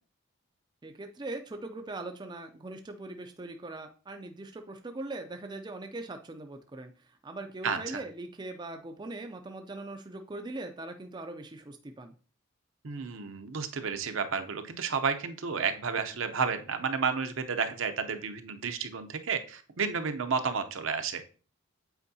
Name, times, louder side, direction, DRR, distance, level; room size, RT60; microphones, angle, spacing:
voice 1, 0.8-6.9 7.2-12.1, right 2 dB, 20° right, 5 dB, 0.4 m, -41 dB
voice 2, 7.6-8.0 12.8-21.3, right 5 dB, 65° right, 7 dB, 0.6 m, -31 dB
8.1 x 4.4 x 2.7 m, 0.38 s
head